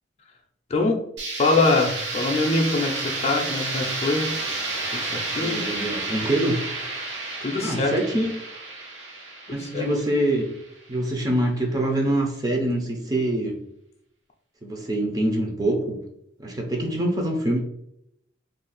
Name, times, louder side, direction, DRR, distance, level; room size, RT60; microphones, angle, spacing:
voice 1, 0.7-1.1 1.4-4.4 4.9-5.6 7.4-7.9 9.5-9.9, left 2 dB, 35° left, 1 dB, 0.4 m, -24 dB
sound 1, 1.2-10.9, right 2 dB, 75° right, 0.8 m, -31 dB
voice 2, 5.4-6.6 7.6-8.3 9.5-10.5 10.9-13.5 14.6-16.0 16.4-17.6, right 1 dB, 20° right, 1 dB, 0.5 m, -24 dB
2.5 x 2.3 x 3.8 m, 0.76 s
head